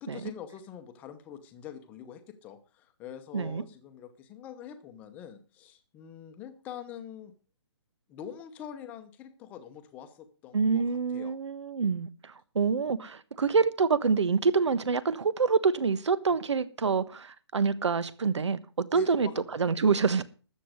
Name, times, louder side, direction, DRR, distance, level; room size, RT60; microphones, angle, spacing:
voice 1, 0.0-7.3 8.1-11.4 18.9-20.1, left 9 dB, 10° left, 0.8 m, -45 dB
voice 2, 10.5-20.2, right 5 dB, 80° right, 1.3 m, -26 dB
13.0 x 7.8 x 6.5 m
hypercardioid pair, 170°, 15 cm